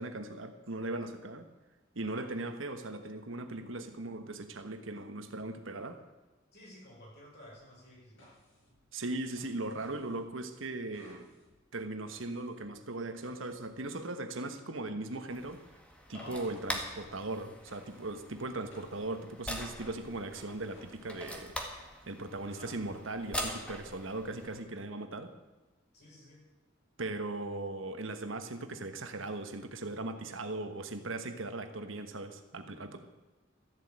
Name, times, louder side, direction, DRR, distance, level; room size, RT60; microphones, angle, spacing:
voice 1, 0.0-1.5 1.9-6.0 8.9-11.3 11.7-15.6 16.1-21.5 22.1-25.3 27.0-33.0, right 2 dB, 80° right, 7 dB, 1.4 m, -39 dB
voice 2, 6.5-8.3 16.1-16.6 22.5-22.8 25.9-26.4, equal, 60° left, -3 dB, 5.6 m, -52 dB
sound 1, 8.2-14.3 15.1-21.5, left 1 dB, 75° left, 6.4 m, -62 dB
sound 2, 15.3-24.6, equal, 5° left, 1.8 m, -43 dB
14.0 x 7.8 x 8.8 m, 1.2 s
head